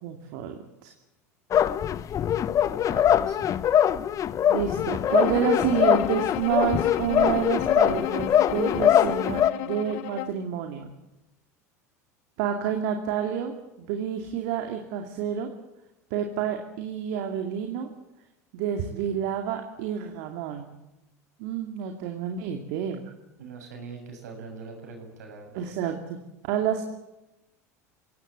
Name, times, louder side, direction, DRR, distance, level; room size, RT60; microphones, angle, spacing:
voice 1, 0.0-0.9 4.5-10.9 12.4-15.5 16.1-17.9 18.5-20.7 21.4-23.0 25.5-26.2 26.4-26.8, right 8 dB, 65° right, 4 dB, 2.5 m, -29 dB
sound 1, 1.5-9.5, left 10 dB, 40° left, 1.0 m, -23 dB
voice 2, 2.7-3.5 23.4-25.6, right 4 dB, 80° right, 3 dB, 7.2 m, -42 dB
Bowed string instrument, 5.1-10.5, left 14 dB, 65° left, 0.9 m, -33 dB
28.5 x 17.5 x 8.1 m, 0.96 s
hypercardioid pair, 80°, 9 cm